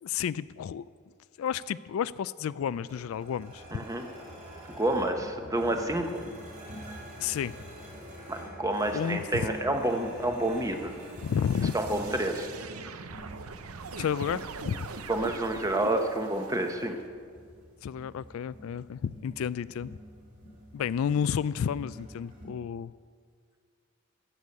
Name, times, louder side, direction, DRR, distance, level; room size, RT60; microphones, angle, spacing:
voice 1, 0.0-0.9 1.4-3.8 7.2-7.6 8.9-9.5 11.2-11.7 14.0-14.9 17.8-20.0 20.7-22.9, left 8 dB, 70° left, 17 dB, 0.3 m, -31 dB
sound 1, 2.6-22.5, equal, 40° right, 3.5 m, -47 dB
voice 2, 3.7-4.0 4.8-6.1 8.3-10.9 11.7-12.5 15.1-17.0, right 1 dB, 15° right, 5 dB, 1.0 m, -29 dB
sound 2, 10.4-17.0, right 4 dB, 90° right, 0.7 m, -43 dB
14.5 x 6.9 x 8.6 m, 2.1 s
head